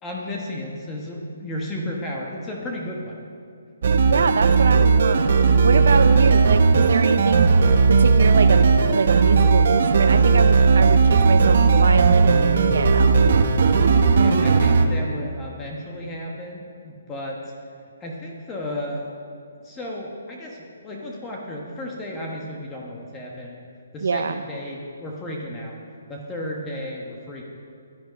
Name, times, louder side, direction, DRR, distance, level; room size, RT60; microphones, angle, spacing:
voice 1, 0.0-3.2 14.1-17.4 18.0-19.1 19.6-23.7 23.9-25.8 26.1-27.4, left 1 dB, 10° left, -2 dB, 1.2 m, -33 dB
sound 1, 3.8-14.9, right 4 dB, 50° right, 1.0 m, -16 dB
voice 2, 4.0-5.3 5.6-7.5 7.9-13.2 24.0-24.4, right 5 dB, 65° right, 9 dB, 0.5 m, -24 dB
16.0 x 10.5 x 5.2 m, 2.3 s
hypercardioid pair, 170°, 0 cm